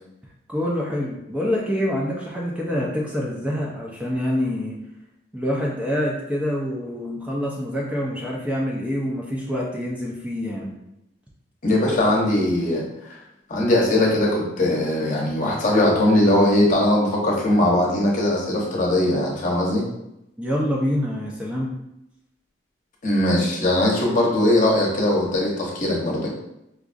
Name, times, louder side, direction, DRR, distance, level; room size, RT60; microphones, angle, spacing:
voice 1, 0.5-4.8 5.3-10.7 20.4-21.8, equal, 5° right, -4 dB, 0.4 m, -26 dB
voice 2, 11.6-13.2 13.5-19.9 23.0-26.3, left 1 dB, 45° left, -3 dB, 0.8 m, -20 dB
4.7 x 2.4 x 2.5 m, 0.85 s
head